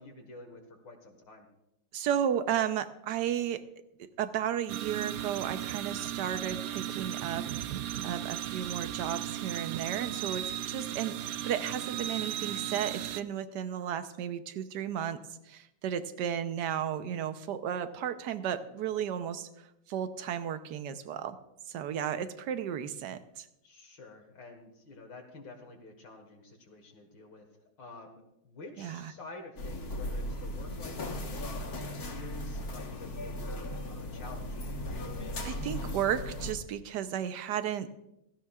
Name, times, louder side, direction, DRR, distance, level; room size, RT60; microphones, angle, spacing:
voice 1, 0.0-1.5 23.6-27.5 27.8-31.8 32.1-34.9, left 3 dB, 70° left, 2 dB, 2.3 m, -49 dB
voice 2, 1.9-3.6 4.2-7.5 7.7-15.2 15.5-19.5 19.9-21.4 21.7-23.5 28.8-29.1 35.4-37.9, right 9 dB, 65° right, 10 dB, 1.3 m, -34 dB
sound 1, 4.7-13.2, right 12 dB, 85° right, 0.7 m, -36 dB
sound 2, 29.6-36.5, left 1 dB, 50° left, 1.8 m, -37 dB
16.5 x 15.5 x 2.4 m, 0.83 s
omnidirectional pair, 2.1 m